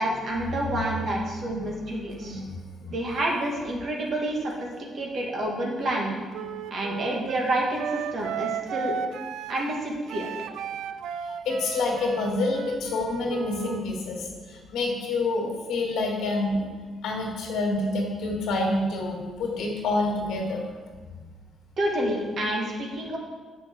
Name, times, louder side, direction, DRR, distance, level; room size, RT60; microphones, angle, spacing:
voice 1, 0.0-2.4 2.9-4.7 4.9-6.2 6.7-8.9 9.5-10.3 21.8-23.2, right 1 dB, 55° right, -1 dB, 1.6 m, -28 dB
voice 2, 1.4-1.8 2.2-3.0 11.3-16.6 17.0-20.6, left 2 dB, 80° left, 0 dB, 1.7 m, -28 dB
Wind instrument woodwind instrument, 6.3-13.8, right 8 dB, 80° right, 0.3 m, -35 dB
7.1 x 5.8 x 4.5 m, 1.5 s
cardioid pair, 90°, 0 cm